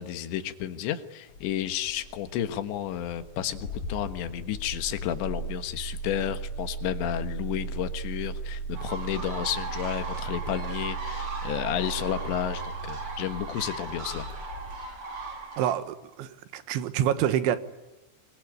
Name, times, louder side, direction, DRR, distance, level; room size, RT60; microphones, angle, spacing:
voice 1, 0.0-14.3, left 11 dB, 75° left, 10 dB, 3.6 m, -32 dB
Engine starting, 1.3-15.4, right 3 dB, 40° left, 4.3 m, -37 dB
sound 1, 8.7-15.7, right 3 dB, 35° right, 3.2 m, -38 dB
voice 2, 15.6-17.6, right 10 dB, 80° right, 12 dB, 3.7 m, -27 dB
24.5 x 22.5 x 9.9 m, 1.1 s
omnidirectional pair, 5.4 m